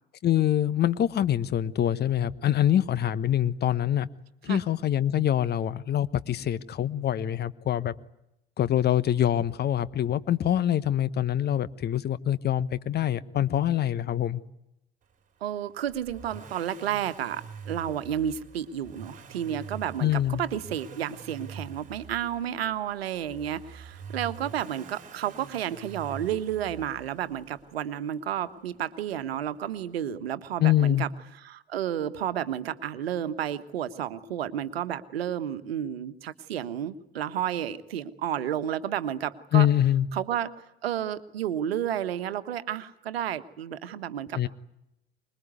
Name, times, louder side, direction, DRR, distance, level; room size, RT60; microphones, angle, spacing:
voice 1, 0.2-4.1 4.4-7.9 8.6-14.4 20.0-20.4 30.6-31.0 39.5-40.1 44.3-44.5, left 11 dB, 30° left, 1.1 m, -25 dB
voice 2, 15.4-20.1 20.4-31.1 31.4-39.7 40.1-40.5 40.8-44.5, right 10 dB, 70° right, 1.4 m, -31 dB
Accelerating revving vroom, 15.9-27.8 29.1-29.2, right 6 dB, 25° right, 4.1 m, -45 dB
25.5 x 21.5 x 9.6 m
figure-of-eight pair, 70°, 31 cm